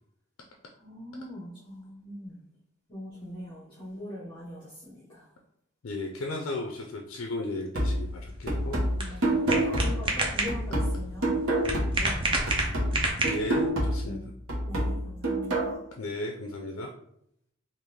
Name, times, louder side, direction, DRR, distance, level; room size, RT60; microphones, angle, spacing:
voice 1, 0.8-2.4 2.9-5.2 9.0-11.4 11.9-12.8 14.0-14.3 14.6-15.8, left 1 dB, 25° left, -8 dB, 0.8 m, -41 dB
voice 2, 5.8-8.8 13.2-14.3 16.0-16.9, left 2 dB, 70° left, 1 dB, 0.4 m, -35 dB
sound 1, 7.7-12.2 12.5-15.7, right 1 dB, 75° right, 0.9 m, -28 dB
sound 2, 8.1-13.7, right 2 dB, 25° right, 0.5 m, -30 dB
3.6 x 2.5 x 3.1 m, 0.71 s
head